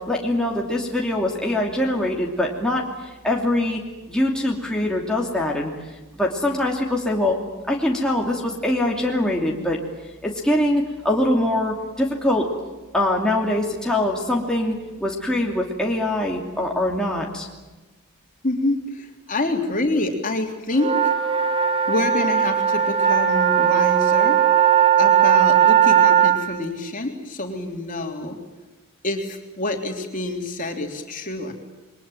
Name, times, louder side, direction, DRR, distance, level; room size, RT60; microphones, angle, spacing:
voice 1, 0.0-3.8 4.1-7.4 7.7-9.8 10.2-12.5 12.9-17.5, left 1 dB, 5° left, -2 dB, 2.8 m, -23 dB
voice 2, 18.4-21.0 21.9-24.4 25.0-28.4 29.0-31.5, left 2 dB, 40° left, 2 dB, 3.6 m, -26 dB
sound 1, 20.7-26.4, right 9 dB, 25° right, 2.8 m, -18 dB
28.0 x 22.5 x 9.1 m, 1.1 s
head